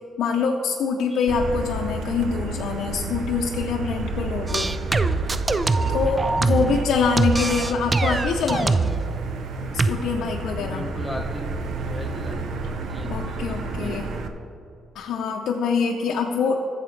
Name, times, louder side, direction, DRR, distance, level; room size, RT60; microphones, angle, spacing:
voice 1, 0.2-4.7 5.9-8.8 9.7-10.9 13.1-14.1 14.9-16.7, left 5 dB, 75° left, 1 dB, 0.6 m, -25 dB
Motor vehicle (road), 1.3-14.3, right 3 dB, 70° right, 0.7 m, -31 dB
sound 1, 4.5-6.9 7.2-9.1 9.8-9.9, right 3 dB, 25° right, 0.4 m, -23 dB
voice 2, 6.4-6.9 10.6-11.5 11.8-14.4, left 1 dB, 5° left, 1 dB, 1.2 m, -37 dB
14.0 x 7.2 x 3.2 m, 2.8 s
cardioid pair, 90°, 0 cm